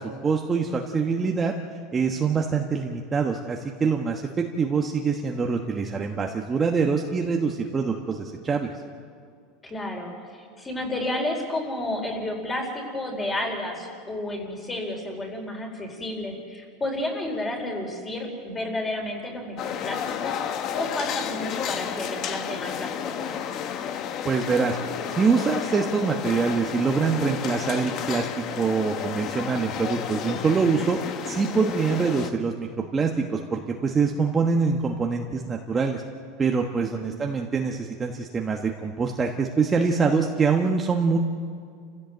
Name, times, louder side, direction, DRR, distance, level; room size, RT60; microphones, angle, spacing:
voice 1, 0.0-1.5 1.9-8.7 24.2-24.8 25.1-28.3 28.5-31.0 31.3-36.0 36.4-41.2, right 5 dB, 20° right, 1 dB, 1.2 m, -24 dB
voice 2, 9.6-20.4 20.7-23.4 36.9-37.1, left 1 dB, 15° left, 1 dB, 4.6 m, -31 dB
sound 1, 19.6-32.3, left 8 dB, 40° left, 1.1 m, -32 dB
29.0 x 16.0 x 7.9 m, 2.2 s
supercardioid pair, 145°, 0 cm